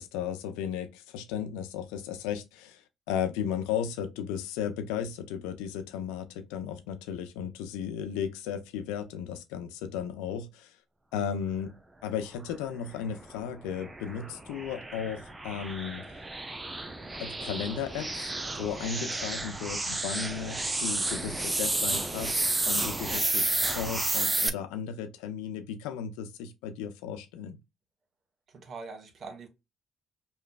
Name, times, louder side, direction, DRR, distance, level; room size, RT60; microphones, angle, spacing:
voice 1, 0.0-2.8 3.1-10.7 11.1-16.2 17.2-18.3 18.6-22.4 22.7-27.6, left 8 dB, 80° left, 0.5 m, -35 dB
sound 1, 12.9-24.5, right 2 dB, 20° right, 0.6 m, -31 dB
voice 2, 28.5-29.5, right 4 dB, 55° right, 1.3 m, -43 dB
5.2 x 2.2 x 2.2 m
hypercardioid pair, 55°, 0 cm